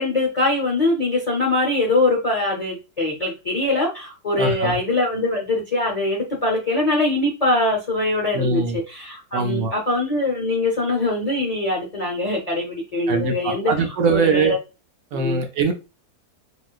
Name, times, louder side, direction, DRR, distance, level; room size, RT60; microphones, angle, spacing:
voice 1, 0.0-14.6 15.1-15.4, left 2 dB, 45° left, 0.5 m, -23 dB
voice 2, 4.4-4.8 8.3-8.8 9.3-9.7 13.1-14.5 15.1-15.7, right 4 dB, 65° right, 1.0 m, -21 dB
4.0 x 2.3 x 2.3 m
omnidirectional pair, 1.6 m